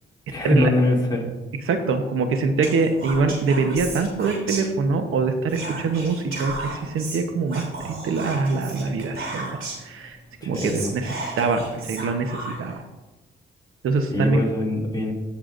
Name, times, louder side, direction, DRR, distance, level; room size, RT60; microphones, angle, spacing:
voice 1, 0.3-1.3 10.4-10.9 14.1-15.1, left 2 dB, 20° left, -3 dB, 2.5 m, -23 dB
voice 2, 1.6-12.8 13.8-14.4, right 4 dB, 90° right, 6 dB, 0.9 m, -24 dB
Whispering, 2.6-5.1 5.5-9.9 10.3-10.4 10.5-12.8, right 2 dB, 70° right, 3.2 m, -34 dB
15.5 x 6.9 x 2.6 m, 1.1 s
cardioid pair, 105°, 21 cm